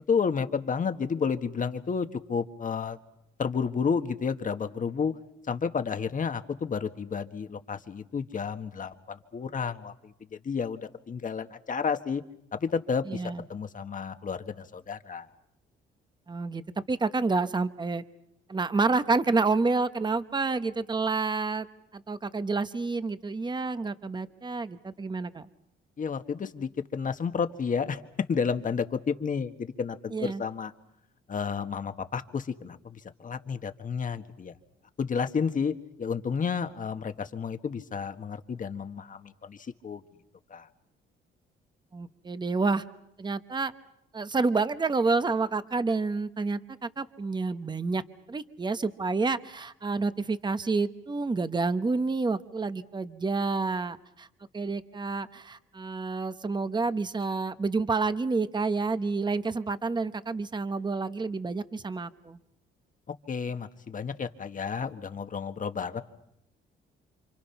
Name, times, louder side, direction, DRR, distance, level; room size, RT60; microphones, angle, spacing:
voice 1, 0.1-3.0 3.4-5.1 5.4-12.2 12.5-13.2 13.5-15.3 26.0-30.7 31.3-34.5 35.0-35.7 36.0-40.0 40.5-40.7 63.1-66.0, left 6 dB, 40° left, 8 dB, 1.6 m, -31 dB
voice 2, 13.1-13.4 16.3-16.6 16.9-18.0 18.5-21.7 21.9-25.5 30.1-30.4 41.9-42.8 43.2-43.7 44.1-48.0 48.3-54.3 54.5-62.4, right 3 dB, 20° right, 11 dB, 1.1 m, -29 dB
28.5 x 26.5 x 5.9 m, 0.79 s
cardioid pair, 90°, 20 cm